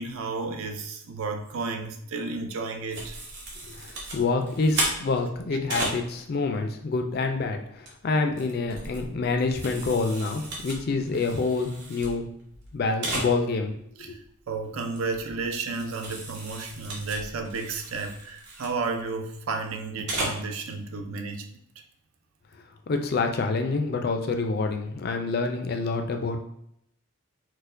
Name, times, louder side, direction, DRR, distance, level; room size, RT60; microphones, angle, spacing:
voice 1, 0.0-3.2 14.0-14.2 14.5-21.5, right 4 dB, 70° right, 5 dB, 0.4 m, -32 dB
sound 1, 2.9-6.0 7.6-7.9 8.3-12.1 12.4-12.5 12.7-12.8 13.0-13.3 14.9-15.0 15.8-18.7 19.9-20.4, right 2 dB, 50° right, 0.8 m, -34 dB
voice 2, 3.7-12.3 12.7-13.7 14.0-14.2 22.9-26.4, left 3 dB, 45° left, 5 dB, 0.3 m, -27 dB
4.3 x 2.1 x 2.5 m, 0.73 s
head